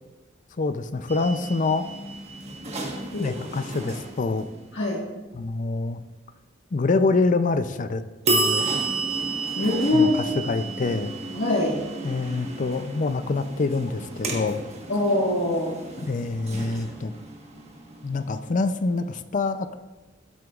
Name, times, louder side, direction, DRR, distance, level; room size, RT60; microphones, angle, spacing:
voice 1, 0.6-1.9 3.2-4.5 5.3-6.0 6.7-8.7 9.9-11.1 12.0-14.6 16.0-17.1 18.0-19.8, left 3 dB, 40° left, 11 dB, 0.5 m, -26 dB
sound 1, 1.1-4.8 8.2-18.9, right 3 dB, 35° right, 1.3 m, -32 dB
voice 2, 9.5-10.2 11.3-11.8 14.9-15.7, left 2 dB, 75° left, -5 dB, 1.5 m, -23 dB
13.0 x 7.8 x 2.4 m, 1.2 s
head